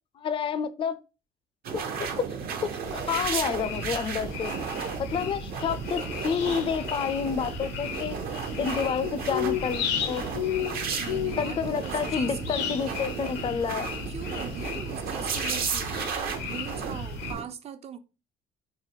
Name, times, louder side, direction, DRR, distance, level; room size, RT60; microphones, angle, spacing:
voice 1, 0.2-1.0 2.0-2.3 2.6-4.5 5.0-8.2 8.6-10.2 11.4-13.9, left 6 dB, 30° left, 0.4 m, -29 dB
sound 1, 1.6-17.4, right 6 dB, 65° right, 0.7 m, -34 dB
sound 2, 2.8-17.3, left 8 dB, 80° left, 0.6 m, -35 dB
voice 2, 11.0-13.0 14.1-18.0, right 8 dB, 40° right, 0.4 m, -41 dB
4.0 x 2.2 x 3.0 m
cardioid pair, 110°, 17 cm